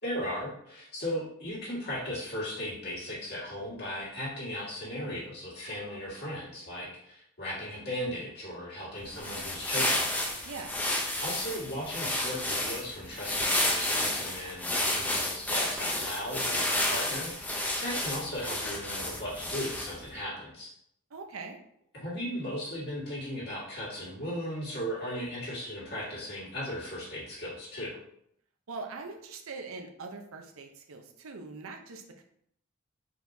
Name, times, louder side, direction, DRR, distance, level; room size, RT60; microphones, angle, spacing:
voice 1, 0.0-10.1 11.2-20.7 21.9-28.0, equal, 55° left, -6 dB, 1.9 m, -37 dB
sound 1, 9.0-20.1, left 1 dB, 10° left, 0.5 m, -31 dB
voice 2, 10.4-10.8 21.1-21.6 28.7-32.2, right 4 dB, 80° right, 4 dB, 0.7 m, -42 dB
4.5 x 4.3 x 2.6 m, 0.72 s
head